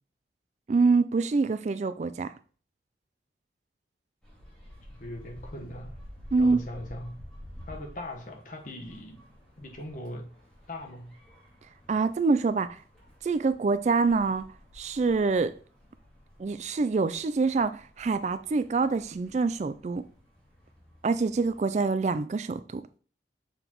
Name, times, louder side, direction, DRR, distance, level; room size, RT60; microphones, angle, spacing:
voice 1, 0.7-2.3 6.3-6.6 11.9-12.8 13.2-14.5 14.7-15.5 16.4-20.0 21.0-22.8, right 4 dB, 40° right, 0.3 m, -25 dB
sound 1, 4.2-21.9, equal, 5° left, 2.7 m, -51 dB
voice 2, 4.9-6.0 6.4-7.2 7.7-9.2 9.6-10.3 10.7-11.1, left 1 dB, 45° left, 1.1 m, -40 dB
6.9 x 6.0 x 3.0 m
head